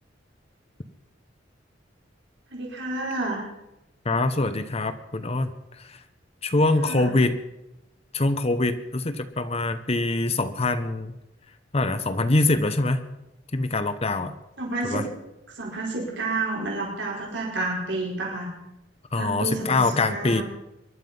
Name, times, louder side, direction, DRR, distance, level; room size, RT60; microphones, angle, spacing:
voice 1, 2.5-3.5 6.8-7.2 14.6-15.1 15.5-18.5 19.1-20.4, right 2 dB, 75° right, -2 dB, 4.8 m, -30 dB
voice 2, 4.0-5.5 5.8-6.0 6.4-7.4 8.1-11.1 11.7-13.1 13.5-14.3 14.8-15.0 19.1-20.4, left 2 dB, 35° left, 10 dB, 0.9 m, -24 dB
23.0 x 11.5 x 5.4 m, 0.91 s
head